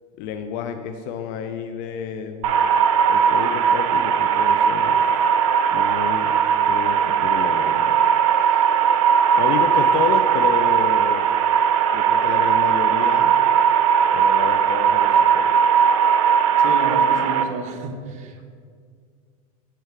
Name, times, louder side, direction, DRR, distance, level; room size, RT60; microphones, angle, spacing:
voice 1, 0.2-2.5 3.1-5.0 5.7-6.3 6.7-8.0 9.4-11.3 11.9-13.3 14.1-15.6, left 7 dB, 50° left, 7 dB, 0.5 m, -30 dB
sound 1, 2.4-17.4, right 8 dB, 70° right, 0.7 m, -18 dB
voice 2, 16.6-18.5, right 3 dB, 40° right, 4 dB, 1.0 m, -30 dB
8.1 x 4.5 x 5.8 m, 2.1 s
supercardioid pair, 120°, 18 cm